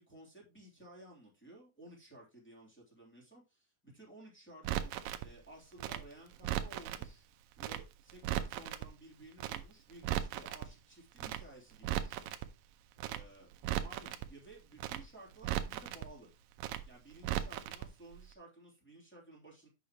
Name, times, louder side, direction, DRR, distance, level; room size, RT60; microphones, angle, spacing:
voice 1, 0.0-4.9 5.2-7.3 7.6-12.2 13.0-13.5 13.8-16.3 16.8-19.7, right 1 dB, 5° left, -4 dB, 2.3 m, -55 dB
Crackle, 4.6-5.3 5.8-7.1 7.6-7.8 8.1-8.9 9.4-9.6 9.9-10.7 11.2-11.4 11.7-12.5 13.0-13.2 13.5-14.3 14.8-15.0 15.3-16.1 16.6-16.8 17.1-17.9 18.1-18.2, right 13 dB, 85° right, 2.0 m, -37 dB
8.3 x 6.1 x 3.0 m, 0.27 s
omnidirectional pair, 4.7 m